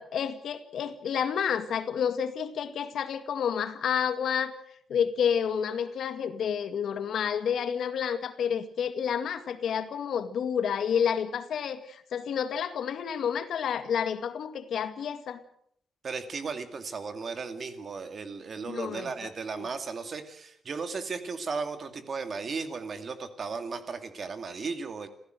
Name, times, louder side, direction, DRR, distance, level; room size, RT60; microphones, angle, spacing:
voice 1, 0.0-4.5 4.9-15.4 18.6-19.1 19.6-19.7, left 8 dB, 75° left, 9 dB, 2.0 m, -30 dB
voice 2, 16.0-25.1, right 4 dB, 45° right, 8 dB, 2.4 m, -35 dB
28.0 x 15.5 x 7.9 m, 0.68 s
wide cardioid pair, 155°, 0 cm